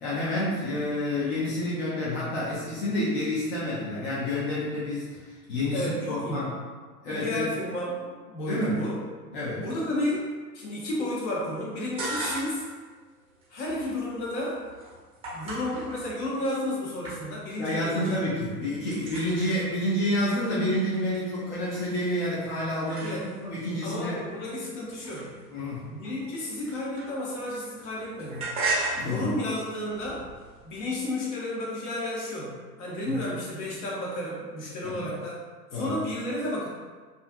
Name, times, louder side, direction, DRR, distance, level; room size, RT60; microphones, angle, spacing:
voice 1, 0.0-6.5 7.0-7.5 8.5-8.9 9.3-9.6 17.6-23.2 23.4-24.2 25.5-25.9 28.9-29.3 33.1-33.2 34.8-35.0 35.7-36.0, left 1 dB, 30° left, -8 dB, 0.5 m, -29 dB
voice 2, 5.7-6.4 7.1-9.0 9.6-12.7 13.5-14.6 15.3-18.2 23.0-23.3 23.8-25.3 25.9-28.5 29.0-30.3 30.6-32.5 32.8-35.4 35.7-36.7, left 1 dB, 45° left, -5 dB, 0.9 m, -32 dB
sound 1, 11.8-12.7 13.1-16.6 17.0-17.6 17.8-18.3 18.5-23.6 24.2-27.5 27.7-30.9, right 3 dB, 10° right, 0.6 m, -37 dB
2.4 x 2.4 x 2.5 m, 1.5 s
figure-of-eight pair, 95°, 49 cm